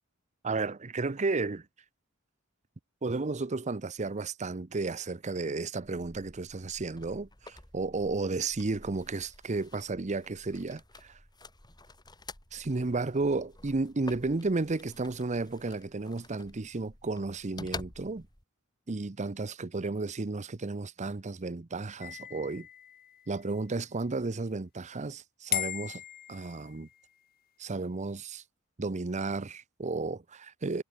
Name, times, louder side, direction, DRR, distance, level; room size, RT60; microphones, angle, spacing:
voice 1, 0.4-1.6 3.0-11.2 12.5-18.3 18.9-22.7 23.3-26.0 26.3-26.9 27.6-28.4 28.8-30.8, right 3 dB, 35° right, 0.7 m, -33 dB
sound 1, 5.8-18.4, left 2 dB, 20° left, 4.2 m, -49 dB
sound 2, 22.0-23.6 25.5-27.1, left 12 dB, 45° left, 1.1 m, -38 dB
head